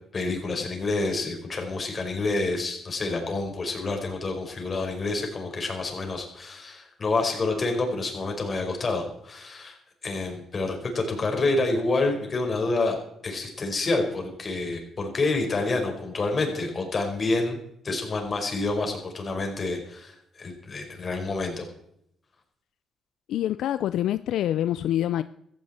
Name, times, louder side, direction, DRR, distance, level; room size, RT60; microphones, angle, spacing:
voice 1, 0.1-9.8 10.0-12.9 13.2-17.6 17.8-21.6, left 3 dB, 40° left, 3 dB, 5.0 m, -28 dB
voice 2, 23.3-25.2, left 12 dB, 80° left, 13 dB, 0.5 m, -26 dB
16.0 x 14.5 x 4.4 m, 0.74 s
cardioid pair, 90°, 0 cm